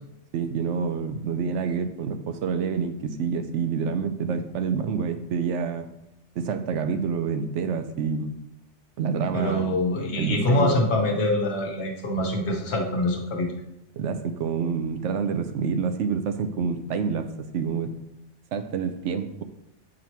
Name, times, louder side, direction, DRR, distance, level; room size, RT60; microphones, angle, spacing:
voice 1, 0.3-5.9 6.4-8.3 9.0-9.7 10.1-10.8 13.9-17.3 17.5-17.9 18.5-19.4, right 6 dB, 75° right, 8 dB, 0.9 m, -27 dB
voice 2, 9.3-13.5, left 1 dB, 65° left, 2 dB, 1.2 m, -24 dB
7.5 x 2.9 x 4.5 m, 0.88 s
omnidirectional pair, 1.2 m